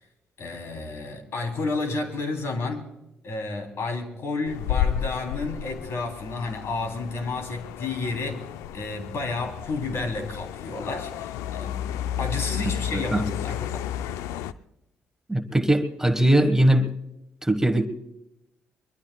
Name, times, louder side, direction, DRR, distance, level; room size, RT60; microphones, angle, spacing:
voice 1, 0.4-2.9 3.2-8.5 8.7-13.8, left 3 dB, 60° left, 5 dB, 3.3 m, -31 dB
sound 1, 4.5-14.5, left 10 dB, 80° left, 0.5 m, -32 dB
voice 2, 12.9-13.2 15.3-16.9 17.4-17.9, right 1 dB, 10° right, 8 dB, 1.4 m, -20 dB
23.5 x 22.0 x 2.3 m, 0.88 s
hypercardioid pair, 50°, 5 cm